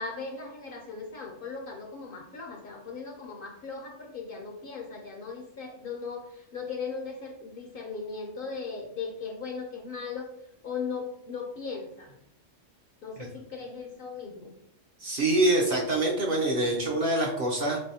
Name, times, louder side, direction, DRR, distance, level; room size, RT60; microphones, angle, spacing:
voice 1, 0.0-10.3 10.6-12.2 13.0-14.5, left 5 dB, 55° left, 1 dB, 0.7 m, -38 dB
voice 2, 15.0-17.8, right 1 dB, 55° right, 0 dB, 0.7 m, -25 dB
4.0 x 3.2 x 2.7 m, 0.74 s
omnidirectional pair, 1.3 m